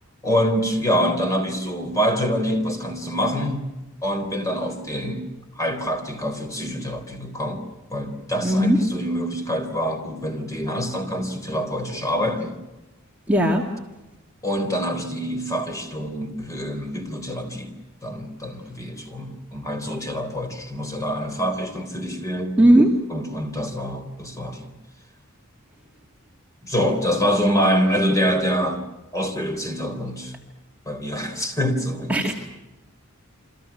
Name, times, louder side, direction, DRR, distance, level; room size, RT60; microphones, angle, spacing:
voice 1, 0.2-3.7 4.0-5.3 5.6-7.6 7.9-12.6 14.4-17.7 18.0-22.6 23.1-24.7 26.6-28.8 29.1-30.4 30.9-32.3, equal, 15° left, 6 dB, 3.9 m, -25 dB
voice 2, 8.4-8.8 13.3-13.6 22.6-22.9 32.1-32.3, right 1 dB, 5° right, -1 dB, 2.4 m, -16 dB
29.5 x 26.0 x 6.0 m, 1.0 s
head